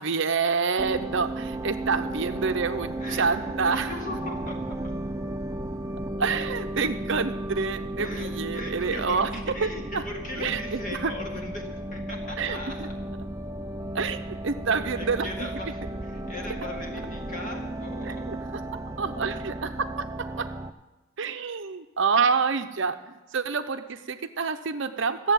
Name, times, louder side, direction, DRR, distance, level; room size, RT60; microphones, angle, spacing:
voice 1, 0.0-4.0 6.2-10.0 10.4-11.1 12.4-12.9 13.9-15.6 18.0-18.4 19.0-20.5 21.2-25.3, right 5 dB, 60° right, 8 dB, 0.7 m, -28 dB
sound 1, 0.8-20.7, right 1 dB, 15° right, 0.4 m, -34 dB
voice 2, 3.0-4.8 8.0-12.8 14.2-14.3 15.0-18.2, left 2 dB, 35° left, 1 dB, 2.2 m, -38 dB
14.0 x 7.5 x 9.1 m, 1.1 s
head